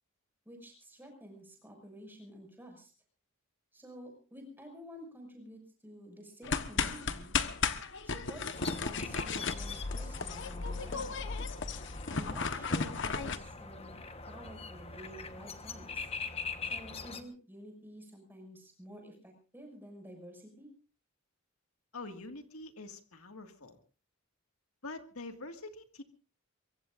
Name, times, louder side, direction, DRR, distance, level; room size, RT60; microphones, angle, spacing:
voice 1, 0.4-2.9 3.7-7.3 8.0-11.3 12.1-14.0 14.3-16.1 16.6-20.7, equal, 10° right, 2 dB, 6.3 m, -50 dB
sound 1, 6.4-13.4, left 4 dB, 55° left, 1.2 m, -35 dB
sound 2, 8.5-17.2, left 4 dB, 25° left, 1.2 m, -43 dB
voice 2, 21.9-23.8 24.8-26.0, left 2 dB, 80° left, 6 dB, 2.0 m, -45 dB
23.5 x 23.5 x 2.6 m, 0.36 s
head